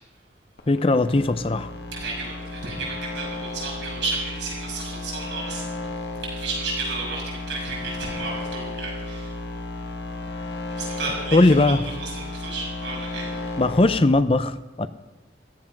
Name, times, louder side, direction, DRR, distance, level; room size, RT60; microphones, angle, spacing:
sound 1, 0.6-14.0, left 2 dB, 75° left, 1.6 m, -34 dB
voice 1, 0.7-1.7 11.3-11.8 13.6-14.9, left 2 dB, 30° left, 12 dB, 0.6 m, -19 dB
voice 2, 1.9-5.6 6.3-9.4 10.8-13.5, right 3 dB, 75° right, -3 dB, 6.6 m, -32 dB
15.0 x 13.0 x 6.0 m, 1.1 s
head